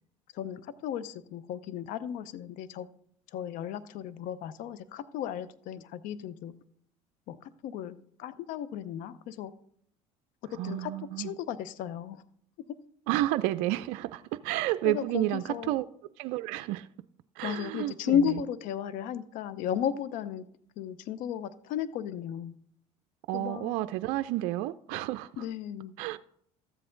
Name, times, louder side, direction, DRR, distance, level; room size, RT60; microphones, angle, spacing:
voice 1, 0.3-2.9 3.3-6.5 7.3-9.5 10.5-10.9 11.2-12.2 14.8-15.8 17.4-20.4 20.8-22.5 23.3-23.8 25.4-25.9, left 9 dB, 65° left, 0.6 m, -34 dB
voice 2, 10.5-11.3 13.1-15.8 16.2-16.9 17.4-18.2 23.3-25.5 26.0-26.2, right 16 dB, 70° right, 0.4 m, -31 dB
13.0 x 7.8 x 3.8 m
supercardioid pair, 85°, 15 cm